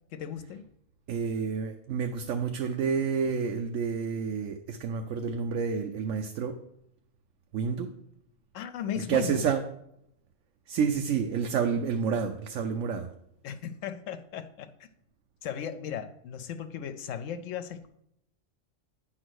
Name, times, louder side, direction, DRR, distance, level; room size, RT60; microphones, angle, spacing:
voice 1, 0.1-0.6 8.5-9.4 13.4-14.9 15.4-17.9, left 8 dB, 80° left, 0.9 m, -36 dB
voice 2, 1.1-6.6 7.5-7.9 9.0-9.6 10.7-13.1, right 6 dB, 80° right, 1.0 m, -29 dB
8.9 x 3.9 x 6.3 m
omnidirectional pair, 1.3 m